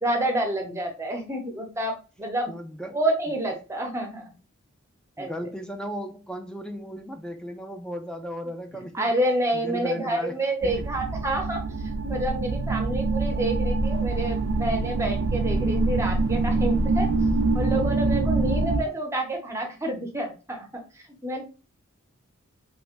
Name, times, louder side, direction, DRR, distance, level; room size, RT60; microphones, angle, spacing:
voice 1, 0.0-2.5 2.9-4.3 5.2-5.3 8.9-11.6 12.0-17.1 17.5-20.8 21.2-21.4, right 1 dB, 15° right, 0.7 m, -28 dB
voice 2, 2.5-3.0 3.3-3.4 5.2-9.1 9.5-10.4 10.6-10.8 18.7-19.0, equal, 5° left, 0.4 m, -36 dB
sound 1, 10.6-18.8, right 3 dB, 90° right, 0.4 m, -25 dB
3.2 x 3.1 x 2.4 m
head